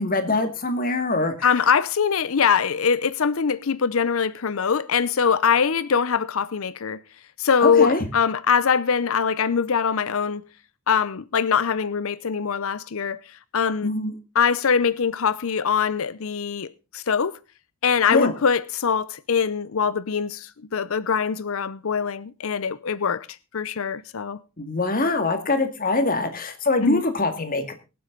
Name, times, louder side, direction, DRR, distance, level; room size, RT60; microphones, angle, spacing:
voice 1, 0.0-1.6 7.6-8.0 13.8-14.1 18.1-18.3 24.6-27.7, left 2 dB, 40° left, 2.0 m, -23 dB
voice 2, 1.4-7.0 7.4-10.4 10.9-13.2 13.5-13.9 14.3-17.4 17.8-23.3 23.5-24.4 26.8-27.0, left 6 dB, 70° left, 0.6 m, -23 dB
23.0 x 7.7 x 3.9 m
head